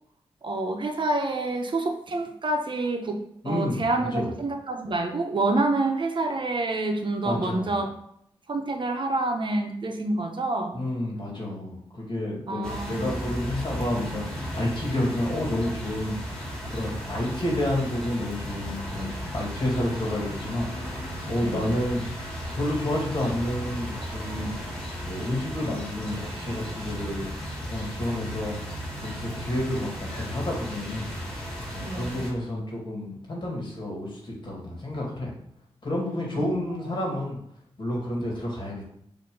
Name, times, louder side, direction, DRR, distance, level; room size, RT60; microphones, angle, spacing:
voice 1, 0.4-3.2 3.4-7.9 8.5-10.8 12.5-13.1 21.4-21.7 31.8-32.2 36.3-36.5, right 2 dB, 50° right, 4 dB, 1.0 m, -27 dB
voice 2, 3.4-4.3 7.2-7.7 10.7-16.2 16.7-22.0 22.5-24.6 25.0-27.3 27.7-28.6 29.0-35.3 35.8-37.4 37.8-38.9, left 1 dB, 50° left, -3 dB, 2.5 m, -30 dB
sound 1, 12.6-32.3, equal, 5° left, 2.3 m, -35 dB
6.7 x 3.0 x 5.5 m, 0.70 s
wide cardioid pair, 90°, 10 cm